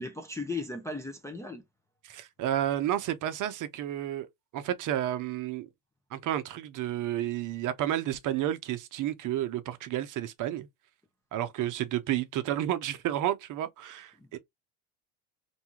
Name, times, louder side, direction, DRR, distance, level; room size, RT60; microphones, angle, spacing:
voice 1, 0.0-1.6 14.2-14.4, left 3 dB, 5° left, 0.4 m, -37 dB
voice 2, 2.0-4.3 4.5-5.7 6.1-10.7 11.3-14.4, right 12 dB, 45° right, 0.6 m, -31 dB
2.7 x 2.3 x 2.8 m
supercardioid pair, 90°, 44 cm